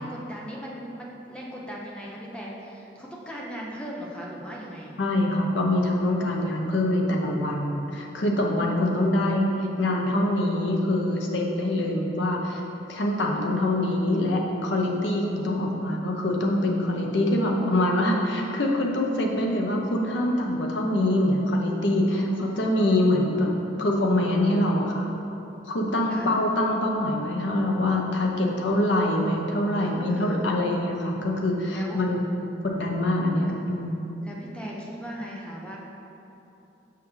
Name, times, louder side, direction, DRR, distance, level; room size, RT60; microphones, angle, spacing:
voice 1, 0.0-4.9 17.6-18.7 22.1-22.7 26.1-26.3 29.7-30.4 31.7-32.0 33.4-33.5 34.2-35.8, equal, 5° left, -4 dB, 0.6 m, -39 dB
voice 2, 5.0-9.5 9.8-12.6 12.9-23.5 23.8-25.1 25.7-32.3 32.6-34.1, left 1 dB, 75° left, 0 dB, 0.8 m, -24 dB
6.1 x 5.8 x 3.2 m, 3.0 s
head